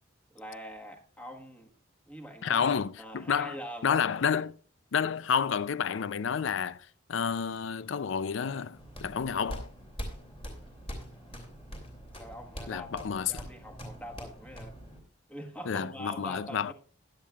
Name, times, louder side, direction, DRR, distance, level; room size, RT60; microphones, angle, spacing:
voice 1, 0.3-1.7 2.1-2.7 3.0-4.0 11.1-11.5 12.1-14.8 15.3-16.7, equal, 5° left, 1.4 m, -44 dB
voice 2, 2.4-3.6 3.8-4.5 4.9-9.7 12.7-13.4 15.7-16.7, left 7 dB, 65° left, 0.4 m, -30 dB
sound 1, 8.7-15.0, equal, 25° left, 2.9 m, -43 dB
16.0 x 10.5 x 2.4 m
head